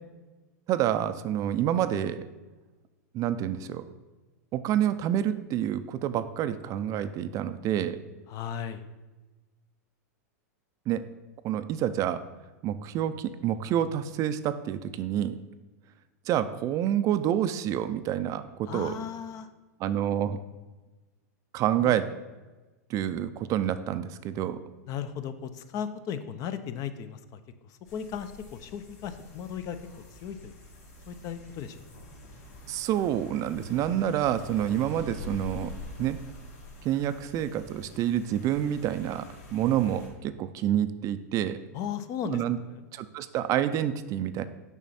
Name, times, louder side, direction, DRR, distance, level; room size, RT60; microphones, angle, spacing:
voice 1, 0.7-2.2 3.1-3.9 4.5-8.0 10.9-11.0 11.4-12.2 12.6-15.4 16.3-18.9 19.8-20.4 21.5-22.0 22.9-24.6 32.7-35.7 36.0-36.2 36.8-39.3 39.5-41.6 42.3-42.6 42.9-44.4, right 11 dB, 40° right, 12 dB, 0.4 m, -28 dB
voice 2, 8.3-8.9 18.7-19.5 21.8-21.9 24.9-27.4 27.7-29.8 30.1-30.5 31.1-31.8 41.7-42.8, left 8 dB, 40° left, 11 dB, 0.6 m, -36 dB
sound 1, 27.9-40.1, left 1 dB, 75° left, 2.7 m, -45 dB
7.1 x 5.7 x 4.2 m, 1.2 s
hypercardioid pair, 115°, 9 cm